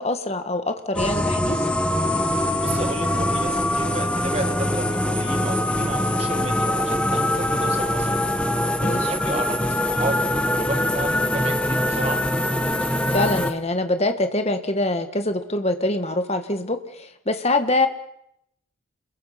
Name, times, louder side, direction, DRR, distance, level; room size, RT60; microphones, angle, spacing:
voice 1, 0.0-1.6 8.8-9.1 13.1-17.9, left 2 dB, 30° left, 7 dB, 1.7 m, -24 dB
sound 1, 1.0-13.5, left 1 dB, 5° left, 1.2 m, -23 dB
voice 2, 2.6-8.2 8.8-12.2, right 2 dB, 30° right, 7 dB, 1.9 m, -32 dB
29.5 x 22.0 x 5.9 m, 0.77 s
head